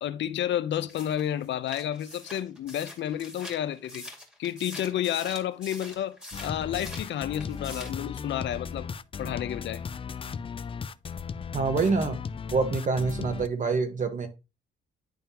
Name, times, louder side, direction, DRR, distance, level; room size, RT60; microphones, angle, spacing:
voice 1, 0.0-4.0 4.4-6.2 6.4-8.9 9.2-9.8, left 11 dB, 65° left, 0.6 m, -30 dB
sound 1, 0.9-7.1 7.4-8.0, left 1 dB, 5° right, 2.2 m, -44 dB
sound 2, 6.3-13.5, left 6 dB, 25° left, 0.4 m, -36 dB
voice 2, 11.5-12.2 12.5-14.3, right 4 dB, 40° right, 1.5 m, -26 dB
10.0 x 3.6 x 2.9 m
cardioid pair, 90°, 20 cm